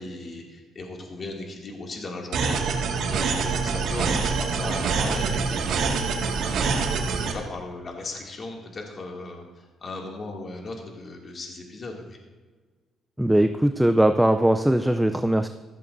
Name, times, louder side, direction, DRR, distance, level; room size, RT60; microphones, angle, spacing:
voice 1, 0.0-2.8 3.1-12.2, left 2 dB, 45° left, 0 dB, 2.3 m, -37 dB
sound 1, 2.3-7.3, right 5 dB, 75° right, 1.9 m, -25 dB
voice 2, 13.2-15.5, right 1 dB, 5° right, 8 dB, 0.5 m, -20 dB
15.0 x 13.5 x 2.6 m, 1.4 s
cardioid pair, 90°, 0 cm